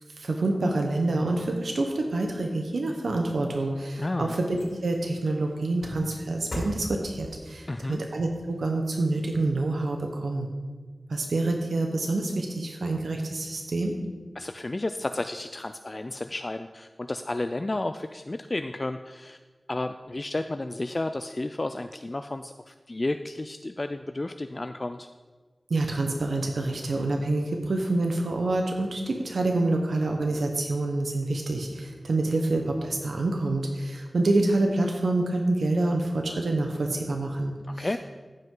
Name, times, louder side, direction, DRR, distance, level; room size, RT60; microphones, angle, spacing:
voice 1, 0.2-10.5 11.1-13.9 25.7-38.0, right 2 dB, 90° right, 2 dB, 0.8 m, -27 dB
sound 1, 3.7-10.0 10.5-10.6, left 1 dB, 65° left, 2.4 m, -42 dB
voice 2, 4.0-4.3 7.7-8.0 14.4-19.4 19.7-25.1 37.7-38.0, left 2 dB, 40° left, 8 dB, 0.3 m, -32 dB
14.5 x 5.4 x 3.8 m, 1.4 s
wide cardioid pair, 55°, 0 cm